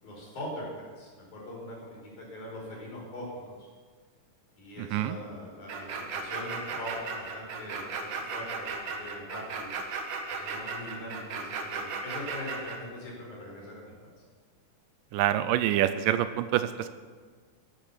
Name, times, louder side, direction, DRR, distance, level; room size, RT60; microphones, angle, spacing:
voice 1, 0.0-3.7 4.6-9.7 10.3-14.1, left 1 dB, 60° left, -3 dB, 6.0 m, -42 dB
voice 2, 4.8-5.2 15.1-16.9, right 12 dB, 80° right, 12 dB, 2.2 m, -26 dB
sound 1, 5.7-12.8, right 4 dB, 65° right, 2.8 m, -35 dB
13.5 x 12.0 x 7.1 m, 1.5 s
omnidirectional pair, 4.0 m